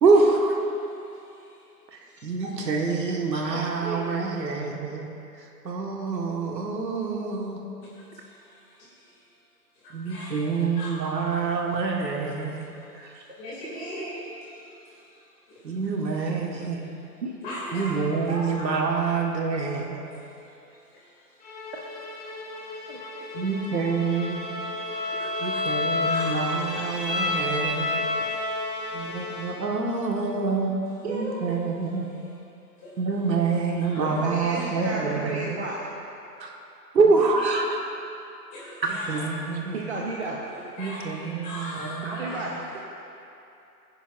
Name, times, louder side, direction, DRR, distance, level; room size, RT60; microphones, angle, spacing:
voice 1, 0.0-0.6 2.2-5.1 5.6-7.6 9.9-12.7 15.6-16.8 17.7-20.0 23.3-24.4 25.4-27.9 28.9-30.7 31.1-32.1 33.0-35.4 36.4-36.5 36.9-37.8 38.9-39.8 40.8-42.4, right 4 dB, 80° right, 0 dB, 1.8 m, -26 dB
voice 2, 0.7-1.7 2.1-2.2 3.1-3.6 7.8-9.2 9.7-11.4 12.4-16.2 16.5-16.9 17.4-18.2 18.5-18.7 20.0-21.4 22.3-22.6 23.2-23.4 25.1-27.6 28.5-29.1 29.4-29.6 32.0-32.4 32.8-33.0 33.8-34.2 34.5-34.7 38.5-39.7 40.5-42.4, equal, 15° left, -8 dB, 2.8 m, -42 dB
voice 3, 3.5-4.2 17.2-17.3 18.3-18.6 22.7-23.0 31.0-31.6 34.0-35.9 39.7-40.4 42.0-42.8, right 3 dB, 40° right, -3 dB, 1.1 m, -33 dB
Musical instrument, 21.4-29.9, left 2 dB, 85° left, 2.5 m, -39 dB
Bowed string instrument, 24.0-28.7, left 2 dB, ahead, 1.2 m, -29 dB
21.5 x 10.0 x 2.6 m, 2.8 s
hypercardioid pair, 165°, 50 cm